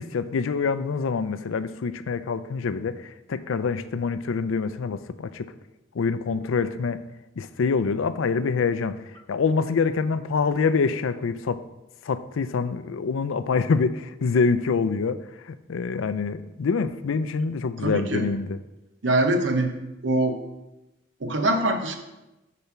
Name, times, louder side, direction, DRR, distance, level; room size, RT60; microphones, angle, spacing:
voice 1, 0.0-5.5 5.9-7.0 7.4-9.0 9.3-11.6 12.0-18.6, left 5 dB, 90° left, 13 dB, 0.4 m, -26 dB
voice 2, 17.8-18.3 19.0-19.8 20.0-20.4 21.2-22.0, right 2 dB, 65° right, 5 dB, 0.9 m, -23 dB
6.9 x 4.3 x 5.8 m, 0.98 s
head